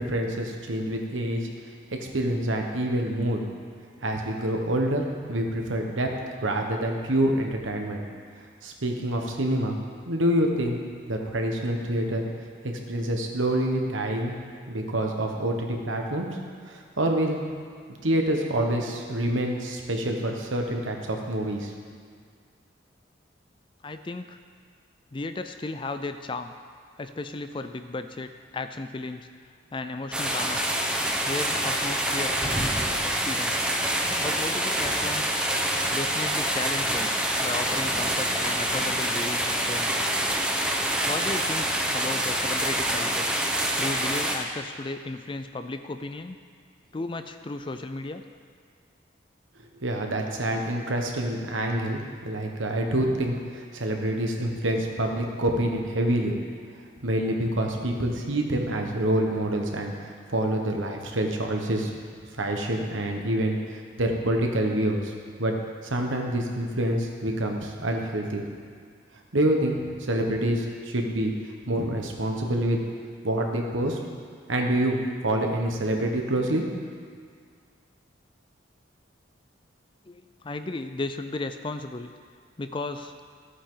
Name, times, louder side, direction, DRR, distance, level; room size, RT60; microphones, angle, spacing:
voice 1, 0.0-1.5 2.0-3.5 4.0-6.1 6.4-8.0 8.6-9.8 10.0-10.8 11.1-12.2 12.6-14.4 14.7-16.3 16.7-17.4 18.0-21.7 49.8-56.3 57.0-61.9 62.4-65.1 65.4-65.5 65.8-68.4 69.3-71.3 71.7-72.8 73.2-74.0 74.5-75.0 75.2-76.6, right 1 dB, 90° right, 2 dB, 1.3 m, -27 dB
voice 2, 23.8-24.4 25.1-26.5 27.0-29.3 29.7-30.7 31.3-33.6 34.2-35.4 35.9-37.1 37.4-39.9 41.1-43.3 43.8-46.4 46.9-48.2 80.0-82.1 82.6-83.1, left 2 dB, 25° left, 8 dB, 0.4 m, -34 dB
sound 1, 30.1-44.4, right 1 dB, 5° right, 0.8 m, -26 dB
14.5 x 8.4 x 3.9 m, 2.1 s
head